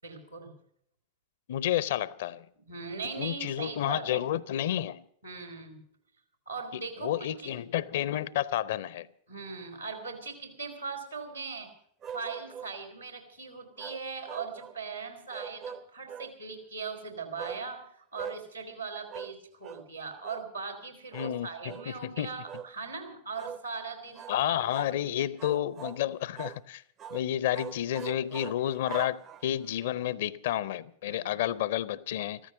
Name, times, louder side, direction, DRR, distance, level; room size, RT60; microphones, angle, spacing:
voice 1, 0.0-0.5 2.6-4.2 5.2-5.8 6.5-7.5 9.3-11.7 12.1-25.3 29.8-30.2 31.0-31.3, right 4 dB, 85° right, 3.4 m, -40 dB
voice 2, 1.5-2.5 3.2-5.0 6.7-9.1 21.1-22.3 24.3-26.8 27.1-32.4, left 12 dB, 55° left, 0.5 m, -31 dB
my-dog-george-the-robot, 12.0-12.8 13.8-14.8 15.3-16.3 17.4-17.6 18.1-18.4 19.1-19.4 19.6-19.9 20.2-20.5 21.1-21.4 21.6-21.9 22.5-22.7 23.4-23.6 24.1-24.4 24.7-25.0 25.4-26.0 26.4-26.6 27.0-27.2 27.5-29.7, right 8 dB, 30° right, 0.5 m, -42 dB
14.5 x 14.0 x 6.3 m
figure-of-eight pair, 90°, 0 cm